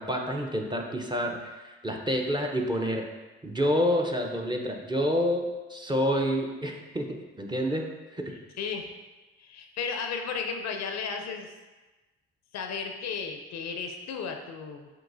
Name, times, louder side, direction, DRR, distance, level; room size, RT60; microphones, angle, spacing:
voice 1, 0.0-3.0 3.4-7.8 8.1-8.3, equal, 15° right, 1 dB, 0.8 m, -28 dB
voice 2, 8.6-8.9 9.4-11.5 12.5-14.9, left 5 dB, 65° left, 4 dB, 0.6 m, -34 dB
7.5 x 2.7 x 2.6 m, 1.2 s
hypercardioid pair, 50°, 29 cm